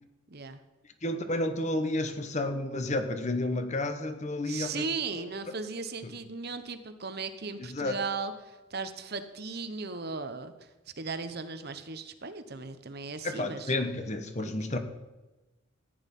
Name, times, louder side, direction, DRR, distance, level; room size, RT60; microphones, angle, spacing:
voice 1, 0.3-0.6 4.4-10.7 11.0-13.7 14.4-14.8, right 4 dB, 50° right, 10 dB, 1.0 m, -37 dB
voice 2, 1.0-4.9 7.6-8.0 13.2-14.8, left 2 dB, 35° left, 8 dB, 1.1 m, -31 dB
15.0 x 9.7 x 5.5 m, 1.1 s
head